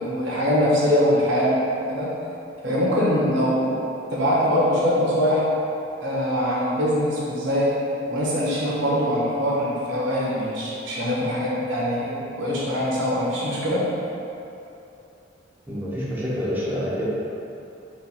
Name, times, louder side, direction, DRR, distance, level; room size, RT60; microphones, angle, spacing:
voice 1, 0.0-2.1 2.6-5.4 6.0-7.7 8.1-13.9, equal, 70° right, -6 dB, 1.1 m, -23 dB
voice 2, 15.7-17.1, equal, 10° right, -9 dB, 0.7 m, -27 dB
4.5 x 2.6 x 4.2 m, 2.8 s
head